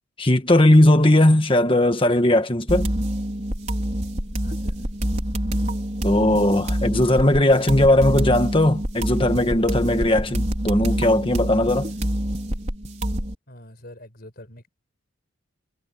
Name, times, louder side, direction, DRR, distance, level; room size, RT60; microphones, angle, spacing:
voice 1, 0.2-2.9 6.0-11.9, left 1 dB, 25° left, 1.5 m, -18 dB
sound 1, 2.7-13.3, equal, 35° right, 5.0 m, -26 dB
voice 2, 4.4-4.8 13.5-14.7, left 1 dB, 45° left, 5.4 m, -44 dB
head